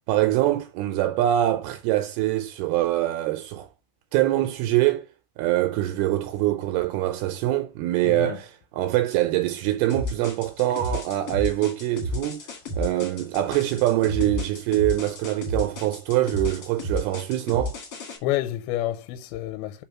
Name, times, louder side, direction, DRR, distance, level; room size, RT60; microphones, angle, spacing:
voice 1, 0.1-3.7 4.1-5.1 5.4-12.4 12.8-17.8, right 14 dB, 85° right, 2.4 m, -24 dB
voice 2, 8.0-8.4 18.2-19.8, left 13 dB, 85° left, 2.5 m, -28 dB
sound 1, 9.9-18.2, left 1 dB, 45° left, 2.4 m, -32 dB
5.4 x 3.6 x 5.8 m
omnidirectional pair, 4.6 m